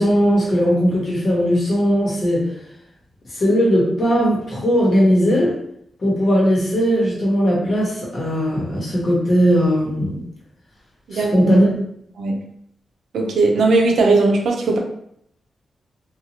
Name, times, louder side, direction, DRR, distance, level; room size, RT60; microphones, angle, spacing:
voice 1, 0.0-2.4 3.3-5.5 6.0-10.2 11.1-11.7, equal, 45° left, -4 dB, 1.0 m, -18 dB
voice 2, 11.1-11.6 12.2-12.3 13.1-14.8, right 3 dB, 90° right, 1 dB, 0.5 m, -18 dB
2.7 x 2.3 x 2.8 m, 0.71 s
wide cardioid pair, 140°, 0 cm